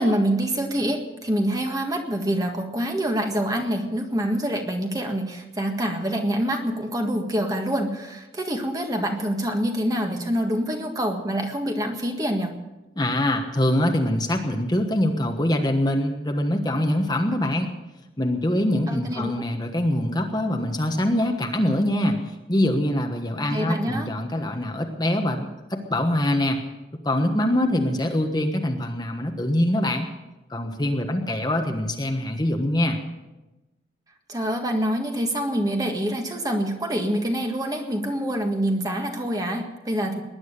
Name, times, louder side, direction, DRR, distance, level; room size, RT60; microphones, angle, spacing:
voice 1, 0.0-12.6 18.9-19.4 23.4-24.1 34.3-40.2, equal, 20° right, 3 dB, 1.7 m, -26 dB
voice 2, 13.0-17.7 18.2-26.6 27.0-30.1 30.5-33.0, left 1 dB, 20° left, 4 dB, 1.3 m, -24 dB
19.5 x 11.0 x 6.7 m, 1.0 s
head